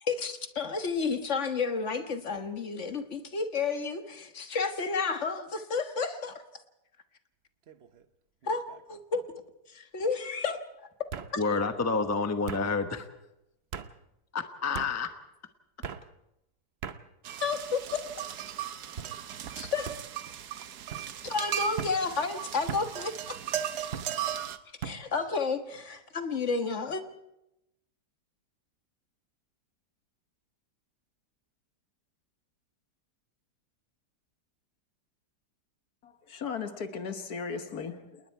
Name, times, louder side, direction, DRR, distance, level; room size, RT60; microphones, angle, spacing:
voice 1, 0.0-6.3 8.4-9.2 9.9-10.6 11.3-11.4 14.7-14.8 17.4-17.8 19.5-19.9 21.2-23.4 24.8-27.0, left 4 dB, 45° left, 1.6 m, -31 dB
sound 1, 7.7-8.0 8.4-9.0 10.0-10.1 11.1-11.3 12.5-12.7 13.7-13.9 14.7-14.9 15.8-16.0 16.8-17.0 17.8-18.2 19.0-19.2 19.8-20.0 20.9-21.1 21.8-22.0 22.7-22.9 23.9-24.1 24.8-25.0, right 7 dB, 45° right, 0.9 m, -39 dB
voice 2, 11.4-13.0 14.3-15.1, left 4 dB, 10° left, 0.9 m, -29 dB
sound 2, 17.2-24.6, right 10 dB, 70° right, 1.4 m, -37 dB
voice 3, 36.0-38.2, left 5 dB, 65° left, 1.7 m, -37 dB
28.5 x 20.0 x 4.6 m
omnidirectional pair, 1.8 m